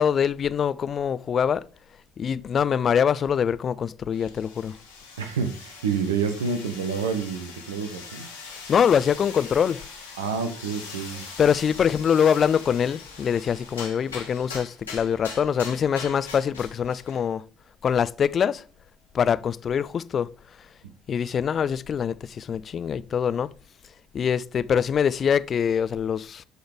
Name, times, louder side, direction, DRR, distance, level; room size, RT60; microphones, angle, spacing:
voice 1, 0.0-1.6 2.2-4.7 8.5-9.9 11.4-17.4 17.8-18.6 19.1-20.3 21.1-23.5 24.1-26.4, left 7 dB, 45° left, 0.4 m, -24 dB
sound 1, 4.1-17.3, left 4 dB, 90° left, 2.0 m, -42 dB
voice 2, 5.2-8.3 10.2-11.2, right 6 dB, 80° right, 0.7 m, -28 dB
11.5 x 3.9 x 3.5 m
figure-of-eight pair, 55°, 0 cm